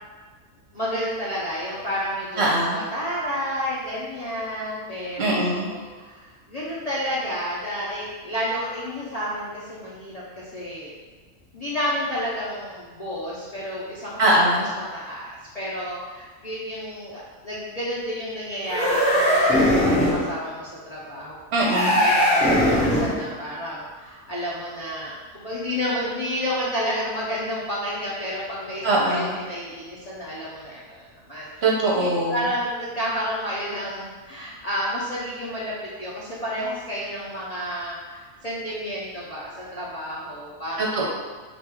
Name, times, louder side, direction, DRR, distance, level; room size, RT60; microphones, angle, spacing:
voice 1, 0.7-10.9 11.5-14.1 14.8-15.3 15.5-21.4 22.0-31.5 32.0-35.7 36.0-41.1, equal, 40° left, -8 dB, 0.6 m, -31 dB
voice 2, 2.4-2.8 5.2-5.7 14.2-14.7 21.5-22.0 28.8-29.4 31.6-32.4 40.8-41.1, right 1 dB, 55° right, -3 dB, 0.9 m, -21 dB
sound 1, 18.6-20.3 21.6-23.2, equal, 5° left, 0.9 m, -20 dB
3.5 x 2.5 x 4.6 m, 1.4 s
omnidirectional pair, 1.4 m